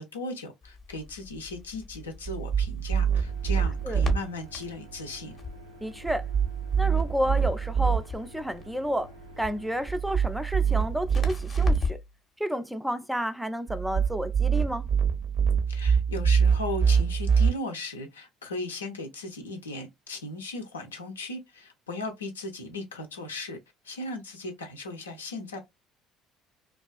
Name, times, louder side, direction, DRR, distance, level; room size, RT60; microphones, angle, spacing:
voice 1, 0.0-5.3 15.7-23.6 23.8-25.6, left 2 dB, 80° left, 0.5 m, -37 dB
Crackle, 0.6-12.2, left 4 dB, 35° left, 0.6 m, -38 dB
sound 1, 2.3-4.2 6.1-8.0 9.9-11.8 13.7-17.5, right 7 dB, 50° right, 0.5 m, -25 dB
sound 2, 3.3-9.9, right 1 dB, 85° right, 0.7 m, -48 dB
voice 2, 5.8-6.3 6.8-9.1 9.4-12.0 12.4-14.9, equal, 5° right, 0.3 m, -31 dB
2.3 x 2.3 x 2.3 m
figure-of-eight pair, 55°, 0 cm